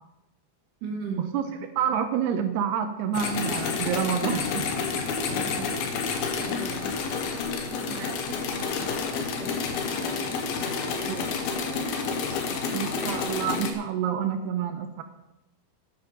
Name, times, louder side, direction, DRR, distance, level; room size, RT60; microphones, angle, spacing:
voice 1, 0.8-1.3 5.3-5.8 6.3-7.0 7.7-13.2, right 4 dB, 55° right, 2 dB, 2.6 m, -41 dB
voice 2, 1.8-4.7 7.9-8.0 11.1-11.3 12.7-15.0, right 8 dB, 80° right, 7 dB, 2.6 m, -28 dB
sound 1, 3.1-13.7, left 5 dB, 65° left, 2.8 m, -29 dB
12.0 x 11.0 x 5.1 m, 0.94 s
omnidirectional pair, 5.2 m